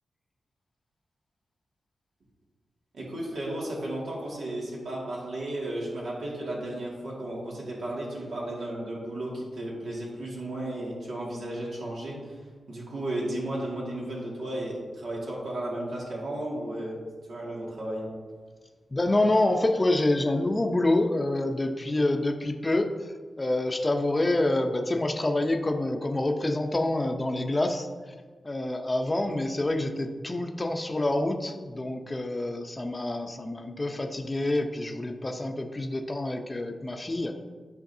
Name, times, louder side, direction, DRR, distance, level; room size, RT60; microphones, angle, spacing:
voice 1, 2.9-12.4 12.7-17.0 17.3-18.0, right 1 dB, 85° right, -5 dB, 2.1 m, -34 dB
voice 2, 18.9-27.9 28.4-37.4, left 2 dB, 25° left, 3 dB, 0.7 m, -27 dB
13.0 x 5.1 x 2.7 m, 1.4 s
wide cardioid pair, 85°, 0 cm